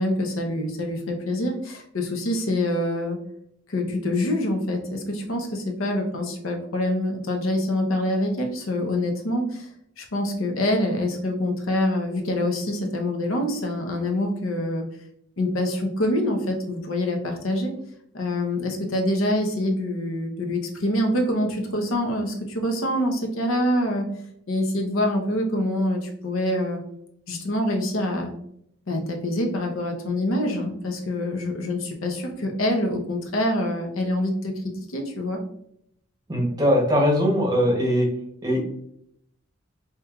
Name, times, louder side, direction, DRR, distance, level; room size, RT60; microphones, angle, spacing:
voice 1, 0.0-3.2 3.7-9.7 10.0-14.8 15.4-17.7 18.1-24.1 24.5-26.8 27.3-28.3 28.9-34.5 34.9-35.4, left 1 dB, 70° left, 2 dB, 0.8 m, -25 dB
voice 2, 36.3-38.1 38.4-38.6, equal, 20° right, 0 dB, 0.8 m, -20 dB
5.2 x 2.9 x 2.3 m, 0.71 s
head